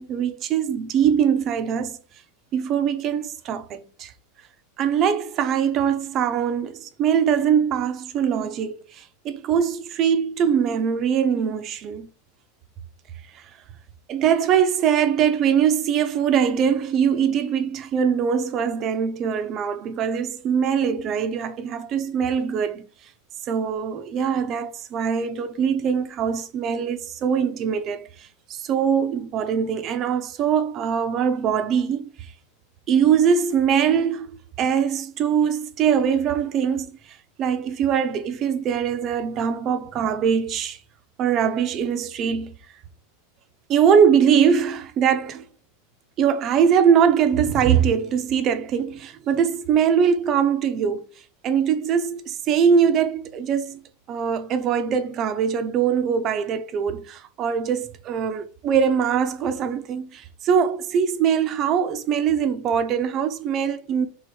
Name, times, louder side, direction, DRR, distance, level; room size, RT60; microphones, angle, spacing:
voice 1, 0.0-2.0 2.5-4.1 4.8-12.1 13.3-13.4 14.1-22.8 23.5-32.1 32.9-40.8 41.2-42.5 43.7-45.4 46.2-51.1 51.4-64.1, right 7 dB, 35° right, 0.9 m, -22 dB
5.3 x 3.9 x 4.9 m
supercardioid pair, 140°, 0 cm